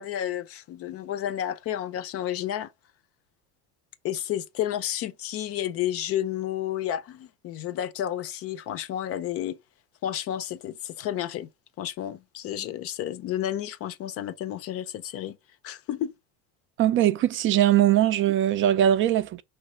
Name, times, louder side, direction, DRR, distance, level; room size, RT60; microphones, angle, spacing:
voice 1, 0.0-2.7 4.0-9.6 10.0-11.5 11.8-15.4 15.6-16.2, left 11 dB, 45° left, 0.6 m, -31 dB
voice 2, 16.8-19.4, right 11 dB, 40° right, 0.4 m, -21 dB
5.7 x 3.2 x 5.4 m
cardioid pair, 150°, 33 cm